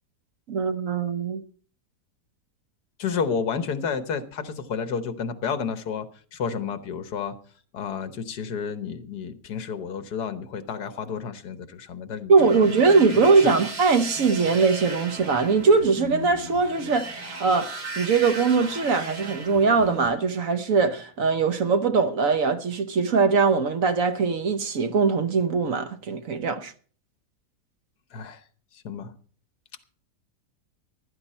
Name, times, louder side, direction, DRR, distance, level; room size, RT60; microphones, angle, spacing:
voice 1, 0.5-1.4 12.3-26.7, right 4 dB, 60° right, 1.2 m, -21 dB
voice 2, 3.0-7.3 7.7-12.7 13.1-13.5 28.1-28.4 28.7-29.1, left 6 dB, 75° left, 1.7 m, -31 dB
sound 1, 12.4-20.1, right 2 dB, 85° right, 3.1 m, -37 dB
15.0 x 12.0 x 4.3 m
omnidirectional pair, 1.8 m